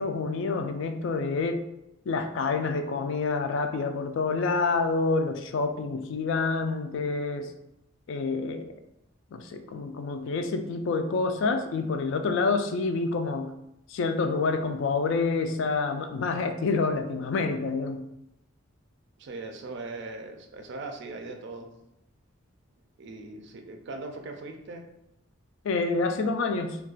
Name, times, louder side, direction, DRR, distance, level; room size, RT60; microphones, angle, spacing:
voice 1, 0.0-1.6 2.1-7.5 8.1-8.7 9.3-13.5 13.9-18.0 25.6-26.8, left 4 dB, 60° left, 7 dB, 0.3 m, -28 dB
voice 2, 19.2-21.7 23.0-24.8, right 3 dB, 55° right, 5 dB, 0.4 m, -39 dB
2.4 x 2.2 x 3.8 m, 0.83 s
head